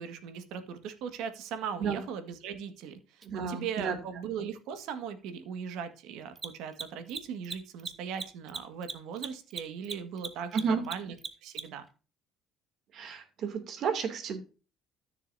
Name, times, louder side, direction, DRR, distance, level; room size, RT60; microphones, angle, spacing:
voice 1, 0.0-11.1 11.4-11.9, right 7 dB, 75° right, 9 dB, 1.8 m, -39 dB
Mechanisms, 3.2-3.3 6.3-11.9, right 5 dB, 30° right, 1.2 m, -39 dB
voice 2, 3.2-4.0 10.5-10.8 12.9-14.4, right 6 dB, 50° right, 6 dB, 2.6 m, -31 dB
13.5 x 6.9 x 2.7 m, 0.34 s
cardioid pair, 135°, 0 cm